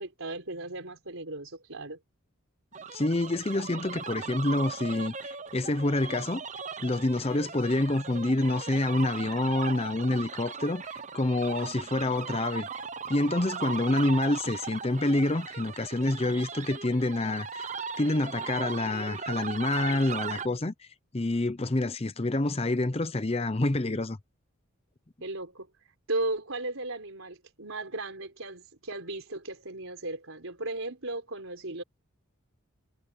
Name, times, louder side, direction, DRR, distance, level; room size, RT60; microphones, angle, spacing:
voice 1, 0.0-2.0 25.2-25.7 26.1-31.8, right 2 dB, 75° right, 4.0 m, -36 dB
sound 1, 2.7-20.5, right 5 dB, 35° right, 0.8 m, -38 dB
voice 2, 2.9-6.4 6.8-12.7 13.1-20.9 21.1-24.2, left 2 dB, 30° left, 0.7 m, -27 dB
head